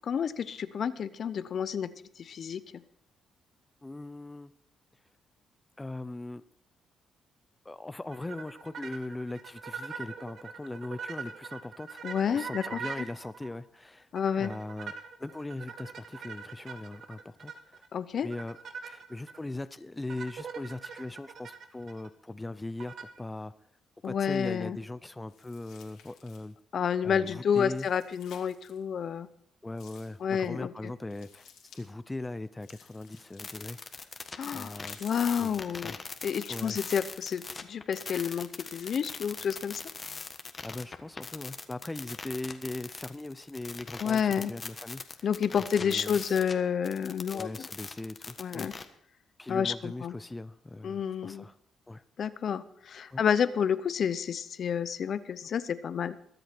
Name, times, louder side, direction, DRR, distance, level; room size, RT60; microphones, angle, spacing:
voice 1, 0.0-1.9 2.2-2.6 12.0-12.8 14.1-14.5 17.9-18.3 24.0-24.8 26.7-29.3 30.2-30.9 34.4-34.7 35.0-35.9 36.2-39.8 44.0-44.5 45.2-47.7 48.4-48.7 49.5-50.1 50.8-51.4 52.2-56.1, left 7 dB, 55° left, 14 dB, 0.7 m, -30 dB
voice 2, 3.8-4.5 5.8-6.4 7.6-12.0 12.3-14.1 14.4-14.9 15.2-17.9 18.2-18.6 18.9-23.5 24.0-26.6 27.0-27.9 29.6-34.1 34.5-35.0 35.4-36.0 36.5-36.8 40.1-40.2 40.6-45.3 45.7-46.4 47.3-48.7 49.4-51.6 51.9-52.0 53.1-53.2, left 2 dB, 15° left, 13 dB, 0.6 m, -40 dB
sound 1, 8.1-13.6 14.1-17.9 18.3-19.4 20.1-22.1 22.8-23.2, right 6 dB, 60° right, 1.6 m, -42 dB
sound 2, 25.3-26.6 27.7-28.8 29.8-30.2 31.1-31.9 32.6-33.9 34.5-35.5 36.2-37.5 38.0-39.0, left 8 dB, 85° left, 2.7 m, -55 dB
sound 3, 33.4-46.6 46.8-48.9, left 4 dB, 35° left, 1.4 m, -41 dB
22.5 x 8.0 x 4.5 m, 0.66 s
cardioid pair, 90°, 0 cm